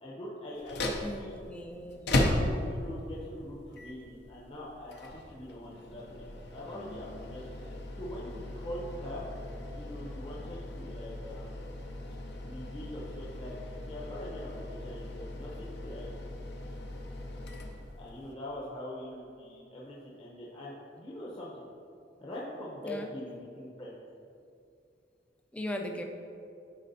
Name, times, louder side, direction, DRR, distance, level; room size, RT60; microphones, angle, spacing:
voice 1, 0.0-1.4 2.2-9.3 9.7-11.6 12.4-13.6 13.9-16.1 17.9-21.7 22.2-24.0, left 1 dB, 30° left, -6 dB, 0.8 m, -43 dB
sound 1, 0.6-18.4, left 1 dB, 65° left, 0.6 m, -37 dB
voice 2, 1.0-2.0 22.8-23.1 25.5-26.0, left 1 dB, 5° left, 2 dB, 0.4 m, -38 dB
10.5 x 4.2 x 2.7 m, 2.6 s
head